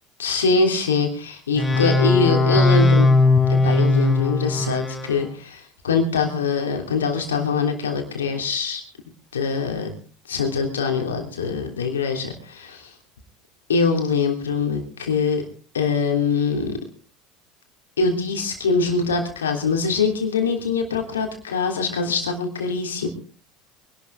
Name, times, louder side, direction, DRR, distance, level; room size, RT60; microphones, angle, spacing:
voice 1, 0.2-3.1 3.6-8.8 9.3-10.0 10.3-12.9 13.7-15.4 15.7-16.7 18.0-23.1, left 4 dB, 85° left, 3 dB, 3.2 m, -23 dB
sound 1, 1.6-5.2, left 3 dB, 10° left, 5.7 m, -18 dB
24.0 x 12.0 x 3.5 m, 0.39 s
hypercardioid pair, 75°, 0 cm